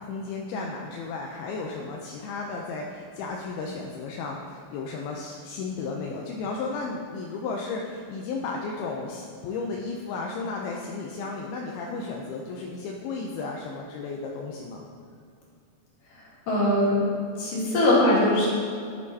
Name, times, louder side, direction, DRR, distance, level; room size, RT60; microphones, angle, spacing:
voice 1, 0.0-14.8, left 4 dB, 85° left, 0 dB, 2.5 m, -34 dB
voice 2, 16.5-17.0 17.4-18.5, left 1 dB, 65° left, -7 dB, 3.6 m, -21 dB
11.0 x 7.5 x 2.7 m, 2.4 s
omnidirectional pair, 4.4 m